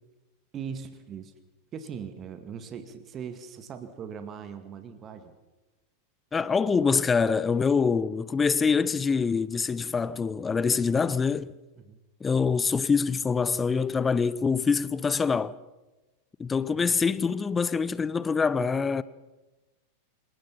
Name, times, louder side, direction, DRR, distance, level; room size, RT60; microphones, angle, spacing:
voice 1, 0.5-1.3 1.7-5.3 11.8-12.0 16.7-16.9, right 7 dB, 30° right, 2.2 m, -40 dB
voice 2, 6.3-11.5 12.2-15.5 16.4-19.0, left 5 dB, 15° left, 0.8 m, -25 dB
27.0 x 18.5 x 5.8 m
figure-of-eight pair, 90°, 0 cm